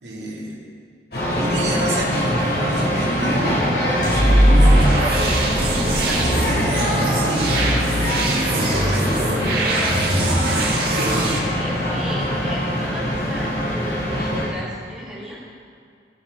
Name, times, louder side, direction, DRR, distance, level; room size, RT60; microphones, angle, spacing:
voice 1, 0.0-0.6 1.4-8.2 8.5-9.1 10.1-11.5, right 1 dB, 80° right, -5 dB, 2.5 m, -29 dB
sound 1, 1.1-14.5, equal, 55° left, 3.0 m, -23 dB
sound 2, 4.0-11.4, right 1 dB, 55° right, 1.9 m, -20 dB
voice 2, 11.5-15.4, equal, 5° right, -9 dB, 3.0 m, -35 dB
17.5 x 7.4 x 4.1 m, 2.2 s
head